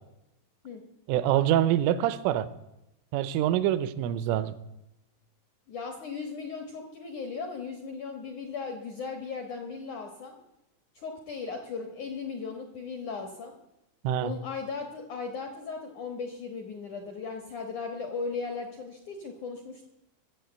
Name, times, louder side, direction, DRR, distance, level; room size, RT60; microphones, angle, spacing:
voice 1, 1.1-2.5 3.1-4.6 14.0-14.3, right 12 dB, 80° right, 14 dB, 3.2 m, -25 dB
voice 2, 5.7-10.3 10.9-13.5 14.2-19.9, left 4 dB, 70° left, 4 dB, 1.8 m, -37 dB
21.5 x 7.9 x 8.0 m, 0.91 s
omnidirectional pair, 5.7 m